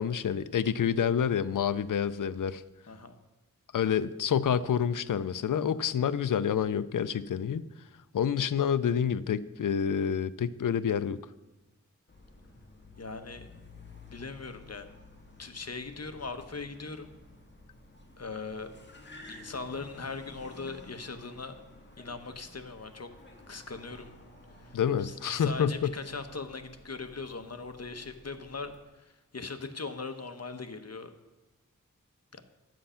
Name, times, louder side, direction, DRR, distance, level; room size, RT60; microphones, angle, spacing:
voice 1, 0.0-2.6 3.7-7.6 8.1-11.2 24.7-25.9, left 8 dB, 75° left, 15 dB, 0.5 m, -28 dB
Car, 12.1-28.8, left 2 dB, 35° left, 1.8 m, -53 dB
voice 2, 13.0-13.5 14.1-14.9 15.4-17.1 18.2-18.7 19.3-21.6 22.0-23.1 23.5-24.1 24.6-31.1 32.3-32.4, left 4 dB, 50° left, 8 dB, 1.1 m, -40 dB
11.5 x 7.6 x 5.7 m, 1.1 s
wide cardioid pair, 50°, 32 cm